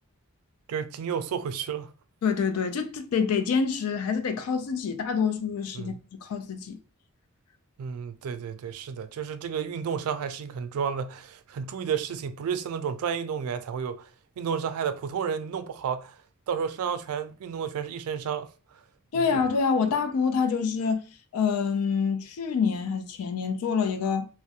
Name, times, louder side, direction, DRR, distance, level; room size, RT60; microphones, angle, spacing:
voice 1, 0.7-1.9 5.7-6.0 7.8-14.1 14.4-16.2 16.5-18.5 19.1-19.3, right 7 dB, 80° right, 0.3 m, -31 dB
voice 2, 2.2-5.9 6.2-6.8 19.1-21.0 21.3-24.3, left 6 dB, 85° left, 0.4 m, -26 dB
2.3 x 2.0 x 2.7 m
head